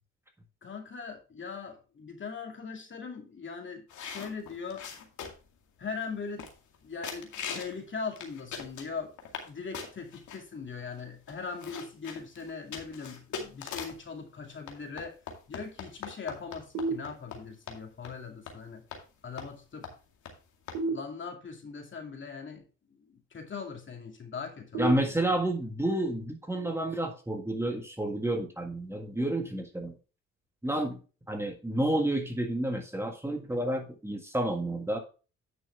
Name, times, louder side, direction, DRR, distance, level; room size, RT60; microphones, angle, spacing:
voice 1, 0.6-4.8 5.8-6.4 6.8-9.1 9.4-15.1 15.5-18.8 19.2-19.9 20.8-22.6 23.0-25.3, left 5 dB, 40° left, 3 dB, 2.5 m, -40 dB
sound 1, 3.9-5.5 6.0-6.1 6.4-6.8 7.0-7.8 8.1-9.5 9.7-10.4 11.0-11.1 11.3-14.1 14.7-17.4 17.7-17.8 18.0-18.2 18.5-18.6 18.9-19.0 19.4-19.6 19.8-19.9 20.2-20.3 20.7-20.8, left 6 dB, 75° left, 2.2 m, -40 dB
sound 2, 16.7-17.7 20.7-21.7 24.7-25.7, right 3 dB, 85° right, 2.6 m, -35 dB
voice 2, 24.8-29.9 30.6-31.0 31.3-35.0, right 1 dB, 10° right, 3 dB, 1.7 m, -30 dB
10.0 x 6.3 x 3.4 m, 0.34 s
cardioid pair, 90°, 30 cm